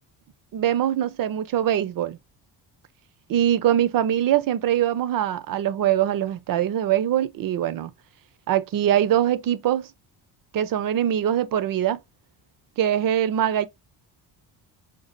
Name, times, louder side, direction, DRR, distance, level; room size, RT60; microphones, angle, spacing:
voice 1, 0.5-2.2 3.3-7.9 8.5-9.9 10.5-12.0 12.8-13.7, right 11 dB, 50° right, 0.6 m, -23 dB
5.2 x 2.3 x 2.4 m
cardioid pair, 95°, 45 cm